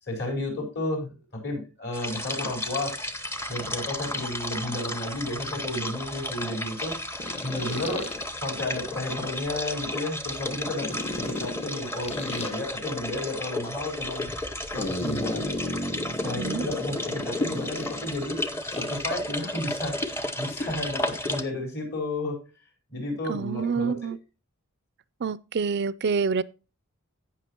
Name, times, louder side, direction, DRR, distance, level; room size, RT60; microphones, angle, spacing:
voice 1, 0.0-8.1 8.3-15.5 16.2-18.4 18.7-22.4 22.9-24.1, left 2 dB, 50° left, 4.5 m, -33 dB
sound 1, 1.9-21.4, left 1 dB, 10° left, 0.8 m, -33 dB
sound 2, 4.6-4.7 7.2-8.2 10.8-12.5 14.7-18.2 18.7-19.1, left 1 dB, 30° left, 1.2 m, -34 dB
voice 2, 23.3-24.2 25.2-26.4, right 5 dB, 50° right, 0.4 m, -27 dB
16.5 x 5.9 x 2.9 m
head